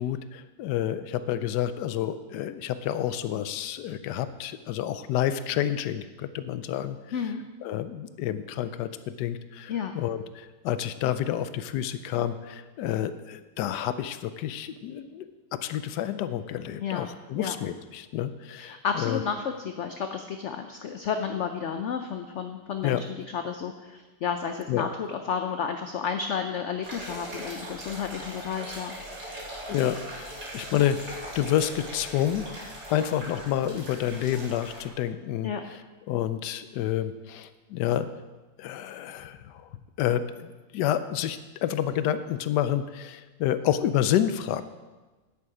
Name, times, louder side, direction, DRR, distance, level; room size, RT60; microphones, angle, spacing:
voice 1, 0.0-7.0 7.6-8.9 9.2-15.3 15.5-19.2 22.8-23.0 24.7-24.9 29.7-32.5 32.9-35.5 36.1-38.1 38.6-39.7 40.0-44.6, left 11 dB, 85° left, 12 dB, 1.2 m, -29 dB
voice 2, 7.1-7.4 9.7-9.9 16.8-17.1 17.3-17.5 18.6-28.9 35.4-35.6, left 7 dB, 65° left, 6 dB, 0.7 m, -32 dB
sound 1, 26.8-34.9, equal, 70° right, 3.5 m, -40 dB
9.7 x 8.4 x 4.9 m, 1.2 s
omnidirectional pair, 1.8 m